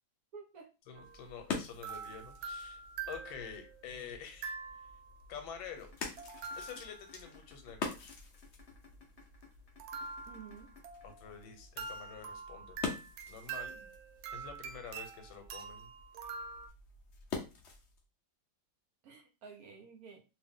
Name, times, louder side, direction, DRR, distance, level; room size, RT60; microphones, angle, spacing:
voice 1, 0.3-0.7 10.3-10.7 19.0-20.2, right 6 dB, 65° right, 3 dB, 0.9 m, -51 dB
voice 2, 0.9-4.5 5.3-5.9 6.6-8.1 11.0-12.8 13.3-13.9 14.3-15.9, left 6 dB, 90° left, 6 dB, 1.4 m, -48 dB
sound 1, 0.9-18.0, left 4 dB, 75° left, 0.6 m, -46 dB
sound 2, 1.0-1.2 1.8-3.7 4.4-5.1 6.2-7.2 9.8-11.4 11.8-16.7, right 5 dB, 90° right, 1.4 m, -45 dB
sound 3, 5.8-11.8, left 8 dB, 45° left, 0.9 m, -58 dB
2.8 x 2.6 x 3.5 m, 0.30 s
omnidirectional pair, 2.1 m